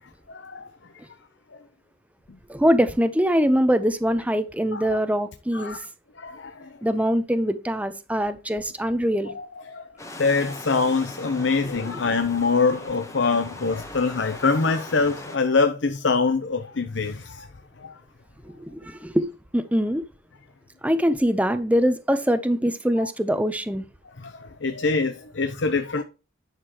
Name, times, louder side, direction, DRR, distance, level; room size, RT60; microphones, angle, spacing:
voice 1, 0.3-0.6 4.7-4.8 5.5-5.8 6.2-6.7 9.3-9.5 9.7-9.8 10.2-17.5 17.8-17.9 24.2-26.0, left 4 dB, 65° left, 0.8 m, -24 dB
voice 2, 2.5-5.8 6.8-9.3 11.6-11.9 18.4-20.1 20.8-23.8, equal, 5° right, 0.7 m, -23 dB
sound 1, 10.0-15.4, left 1 dB, 15° left, 1.2 m, -40 dB
11.0 x 6.6 x 3.0 m
head